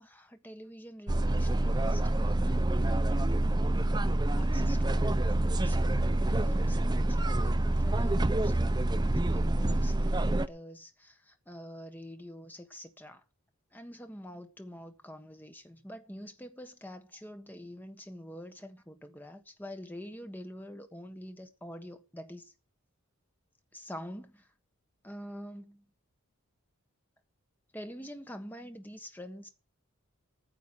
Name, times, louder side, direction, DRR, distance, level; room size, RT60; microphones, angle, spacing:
voice 1, 0.0-2.8 4.3-13.2 13.7-22.5 23.7-24.5 25.0-25.8 27.7-29.5, equal, 10° left, 1.4 m, -46 dB
sound 1, 1.1-10.5, right 1 dB, 20° right, 0.6 m, -27 dB
9.8 x 7.8 x 9.1 m
head